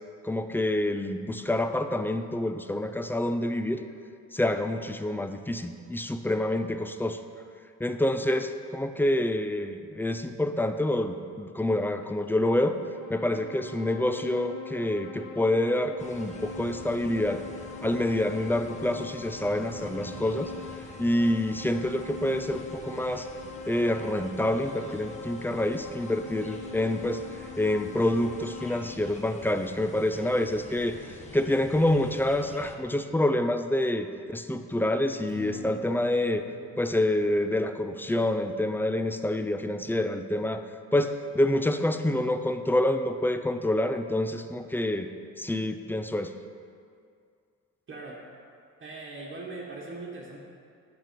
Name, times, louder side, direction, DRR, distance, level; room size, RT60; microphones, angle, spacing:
voice 1, 0.2-3.8 4.3-7.2 7.8-12.8 13.1-17.4 17.8-20.5 21.0-23.3 23.7-27.2 27.6-36.4 36.8-40.6 40.9-45.1 45.4-46.3, left 1 dB, 5° left, 8 dB, 0.4 m, -27 dB
sound 1, 12.5-28.8, left 2 dB, 75° left, 1.1 m, -42 dB
sound 2, 16.0-32.7, left 2 dB, 25° left, 1.1 m, -47 dB
Strum, 35.3-40.5, right 1 dB, 90° right, 1.5 m, -49 dB
voice 2, 47.9-48.2 48.8-50.4, right 3 dB, 40° right, -4 dB, 1.3 m, -40 dB
9.2 x 6.0 x 5.2 m, 2.3 s
cardioid pair, 90°, 30 cm